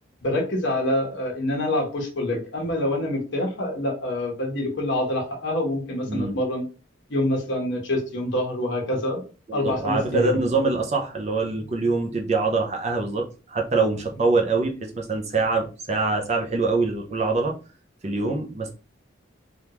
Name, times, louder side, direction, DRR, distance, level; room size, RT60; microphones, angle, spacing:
voice 1, 0.2-6.6 7.1-9.2 9.5-10.4, left 1 dB, 65° left, -1 dB, 1.1 m, -26 dB
voice 2, 9.5-17.5 18.0-18.7, right 3 dB, 35° right, 2 dB, 0.5 m, -24 dB
3.5 x 2.3 x 2.9 m, 0.34 s
head